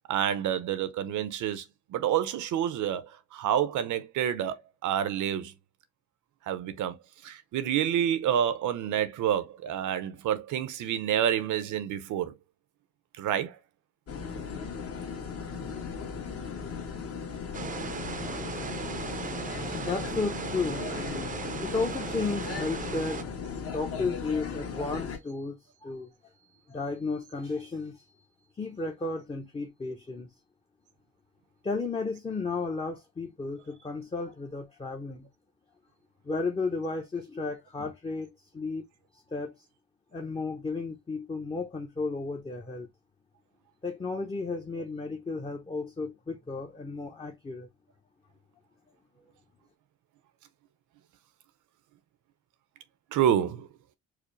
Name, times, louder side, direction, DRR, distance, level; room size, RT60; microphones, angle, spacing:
voice 1, 0.1-1.6 1.9-5.5 6.5-7.0 7.2-12.3 13.2-13.6 53.1-53.7, right 10 dB, 80° right, 0.7 m, -28 dB
sound 1, 14.1-25.2, left 5 dB, 50° left, 1.2 m, -37 dB
sound 2, 17.5-23.2, right 5 dB, 25° right, 0.5 m, -37 dB
voice 2, 19.5-20.8 21.5-23.3 23.6-28.0 28.6-30.3 31.6-35.3 36.2-38.8 39.3-39.5 40.1-42.9 43.8-47.7, left 3 dB, 20° left, 0.7 m, -33 dB
4.8 x 2.0 x 3.0 m
cardioid pair, 90°, 30 cm